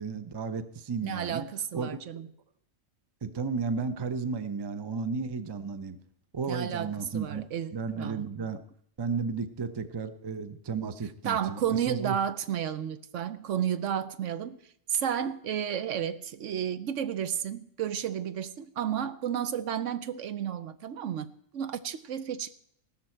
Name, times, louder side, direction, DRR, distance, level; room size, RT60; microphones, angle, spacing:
voice 1, 0.0-1.5 1.7-1.9 3.2-6.0 6.3-7.4 7.7-8.6 9.0-12.2, right 5 dB, 30° right, 0.5 m, -33 dB
voice 2, 1.0-2.3 6.5-8.2 11.2-14.6 14.9-22.6, right 9 dB, 70° right, 1.0 m, -32 dB
16.0 x 13.0 x 4.4 m
omnidirectional pair, 1.4 m